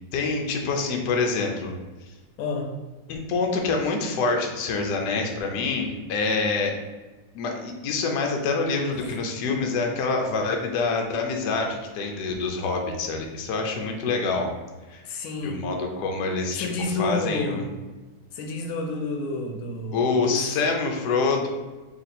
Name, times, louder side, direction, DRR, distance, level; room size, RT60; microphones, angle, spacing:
voice 1, 0.1-1.7 3.1-6.7 7.3-14.5 14.9-15.0 15.4-17.7 19.9-21.5, left 4 dB, 70° left, 2 dB, 1.0 m, -26 dB
voice 2, 2.4-2.7 8.9-9.1 15.0-15.6 16.5-17.6 18.3-20.5, left 3 dB, 85° left, 3 dB, 1.4 m, -30 dB
3.2 x 2.8 x 4.1 m, 1.2 s
omnidirectional pair, 2.2 m